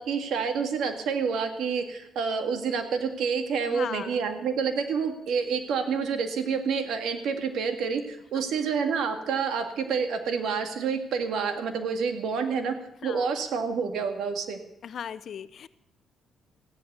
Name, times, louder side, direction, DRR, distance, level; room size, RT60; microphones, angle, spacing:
voice 1, 0.0-12.8 13.0-14.6, right 6 dB, 75° right, 7 dB, 2.0 m, -28 dB
voice 2, 3.7-4.2 13.0-13.3 14.8-15.7, left 8 dB, 60° left, 16 dB, 0.7 m, -37 dB
15.0 x 10.5 x 6.8 m, 0.84 s
cardioid pair, 90°, 0 cm